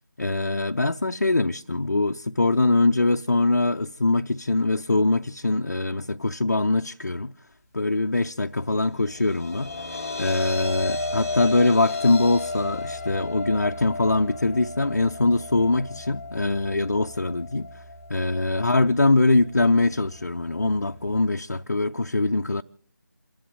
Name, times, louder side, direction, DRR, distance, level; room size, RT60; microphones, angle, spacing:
voice 1, 0.2-7.3 7.7-9.7 10.2-17.7 18.1-22.6, left 2 dB, 50° left, 0.6 m, -23 dB
sound 1, 8.9-21.3, left 2 dB, 10° left, 0.9 m, -35 dB
28.5 x 11.0 x 3.7 m
figure-of-eight pair, 165°, 10 cm